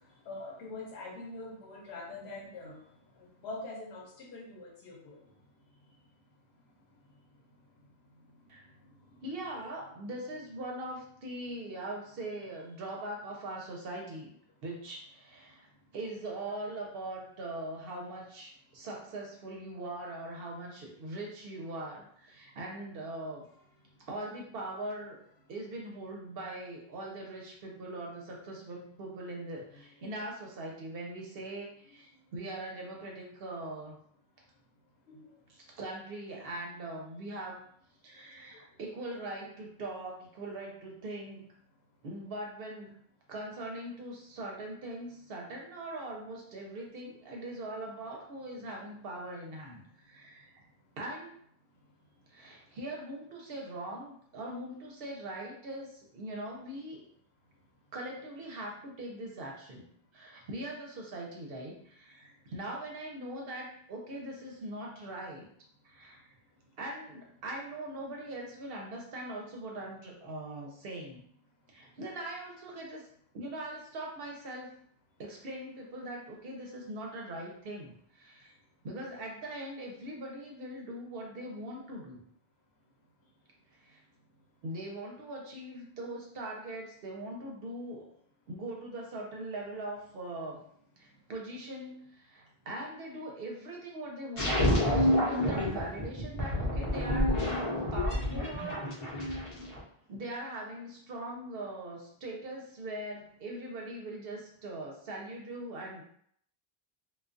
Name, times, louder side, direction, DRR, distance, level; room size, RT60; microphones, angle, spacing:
voice 1, 0.3-2.8 3.2-5.2 35.1-35.3, left 2 dB, 85° left, -1 dB, 0.9 m, -43 dB
voice 2, 9.2-14.4 14.6-15.7 15.9-23.5 24.0-25.2 25.5-34.0 35.5-37.7 38.0-41.5 42.0-43.0 43.3-50.6 51.0-51.4 52.3-57.0 57.9-59.8 60.1-65.5 65.8-66.3 66.8-71.2 71.7-73.1 73.3-74.8 75.2-78.5 78.8-82.2 83.7-84.0 84.6-88.1 88.5-90.6 91.0-97.4 97.9-98.8 99.1-99.4 100.1-106.0, right 1 dB, 70° right, -1 dB, 0.9 m, -41 dB
sound 1, 94.4-99.8, left 1 dB, 35° left, 0.7 m, -29 dB
2.3 x 2.2 x 2.5 m, 0.65 s
omnidirectional pair, 1.0 m